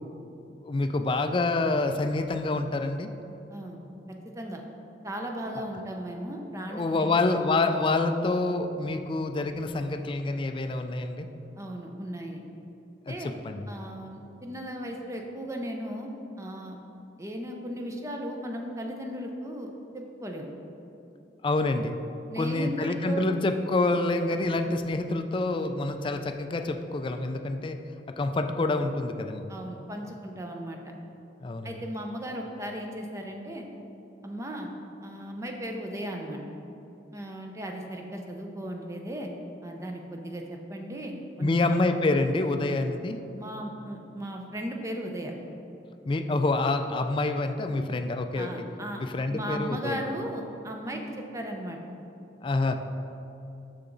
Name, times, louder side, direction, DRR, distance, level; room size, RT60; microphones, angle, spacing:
voice 1, 0.6-3.1 6.7-11.3 13.1-13.6 21.4-22.0 22.4-27.8 28.2-29.4 31.4-31.7 41.4-43.2 46.1-48.6 49.0-50.0 52.4-52.8, left 2 dB, 30° left, 7 dB, 0.3 m, -27 dB
voice 2, 4.2-4.6 5.0-7.4 11.6-12.4 13.1-13.3 13.7-16.1 16.4-16.8 17.2-20.5 22.3-23.3 29.5-30.8 31.6-33.6 34.2-34.7 35.0-36.4 37.1-39.3 39.6-41.8 43.3-45.3 48.3-49.0 49.3-51.8, right 1 dB, 15° right, 2 dB, 0.6 m, -36 dB
6.8 x 5.9 x 3.9 m, 2.9 s
head